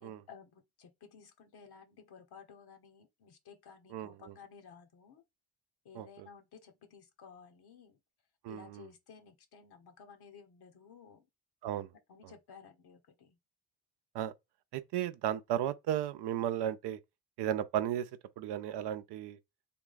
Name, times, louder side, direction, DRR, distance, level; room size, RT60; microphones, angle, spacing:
voice 1, 0.0-5.2 5.8-8.0 8.5-11.2 12.1-13.4, left 6 dB, 60° left, 1.3 m, -55 dB
voice 2, 3.9-4.3 5.9-6.3 8.4-8.9 11.6-11.9 12.2-12.3 14.1-14.3 14.7-17.0 17.4-18.1 18.4-19.4, right 11 dB, 65° right, 0.6 m, -35 dB
3.6 x 2.3 x 3.9 m
supercardioid pair, 60°, 43 cm